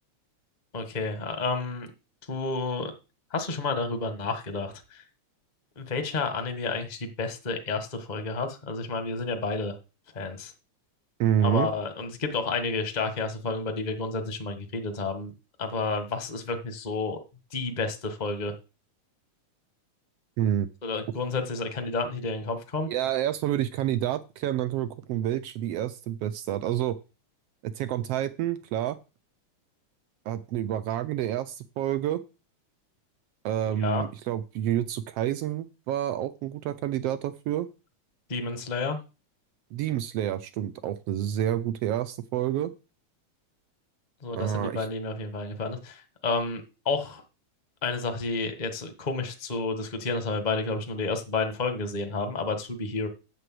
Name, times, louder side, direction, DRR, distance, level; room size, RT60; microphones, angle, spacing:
voice 1, 0.7-1.9 2.3-2.9 3.3-5.0 5.8-9.8 10.1-10.5 11.4-15.3 15.6-17.2 17.5-18.5 20.8-22.9 33.7-34.0 38.3-39.0 44.2-47.2 47.8-53.1, left 3 dB, 40° left, 6 dB, 0.6 m, -30 dB
voice 2, 11.2-11.7 20.4-20.7 22.9-27.0 27.6-29.0 30.2-32.2 33.4-37.7 39.7-42.7 44.4-44.9, right 11 dB, 80° right, 14 dB, 1.4 m, -28 dB
8.1 x 6.8 x 7.7 m, 0.30 s
omnidirectional pair, 3.5 m